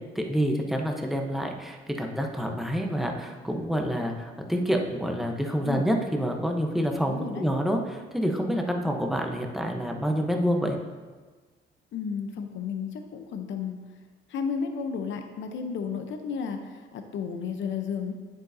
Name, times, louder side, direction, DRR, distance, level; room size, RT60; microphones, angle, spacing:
voice 1, 0.1-10.8, equal, ahead, 2 dB, 0.9 m, -27 dB
voice 2, 7.1-7.5 11.9-13.8 14.3-18.1, left 6 dB, 70° left, 6 dB, 0.8 m, -33 dB
9.1 x 7.7 x 2.8 m, 1.4 s
cardioid pair, 90°, 20 cm